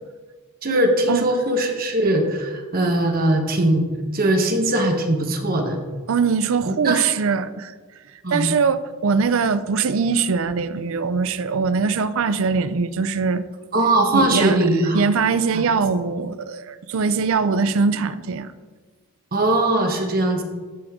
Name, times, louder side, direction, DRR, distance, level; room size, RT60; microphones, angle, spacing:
voice 1, 0.6-3.8 4.1-5.8 6.6-7.0 8.2-8.5 13.7-15.0 15.5-15.6 19.3-20.4, right 1 dB, 40° right, 1.1 m, -20 dB
voice 2, 6.1-7.7 8.3-13.4 14.1-14.6 14.9-18.5, right 5 dB, 60° right, 0.4 m, -22 dB
13.5 x 5.0 x 3.6 m
head